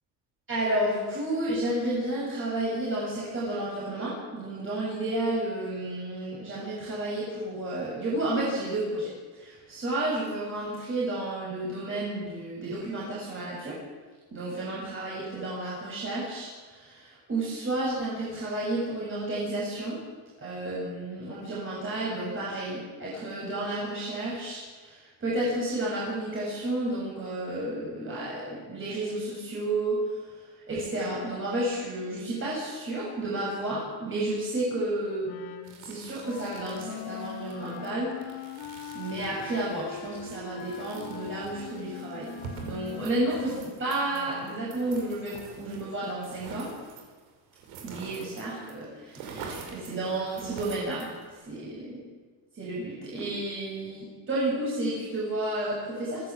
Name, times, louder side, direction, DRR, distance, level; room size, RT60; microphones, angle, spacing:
voice 1, 0.5-13.8 14.3-20.0 20.4-35.3 35.8-38.4 38.9-42.3 42.6-43.5 43.8-46.7 47.8-52.0 52.5-56.3, right 1 dB, 25° right, -6 dB, 7.3 m, -31 dB
Wind instrument woodwind instrument, 35.2-44.7, left 8 dB, 50° left, 2.1 m, -42 dB
sound 1, 35.6-48.8 49.0-51.4, right 5 dB, 70° right, 5.3 m, -46 dB
25.5 x 16.0 x 7.6 m, 1.4 s
cardioid pair, 150°, 48 cm